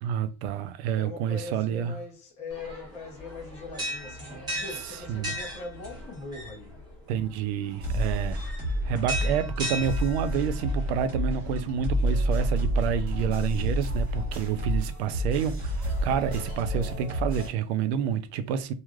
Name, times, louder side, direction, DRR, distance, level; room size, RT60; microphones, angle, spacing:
voice 1, 0.0-1.9 5.1-5.3 7.1-8.4 8.9-18.7, right 8 dB, 85° right, 0.5 m, -29 dB
voice 2, 0.9-6.8, left 3 dB, 20° left, 0.6 m, -41 dB
sound 1, 2.5-16.9, right 1 dB, 15° right, 0.8 m, -40 dB
sound 2, 7.8-17.5, equal, 30° right, 1.1 m, -29 dB
3.1 x 2.4 x 2.3 m
cardioid pair, 175°, 32 cm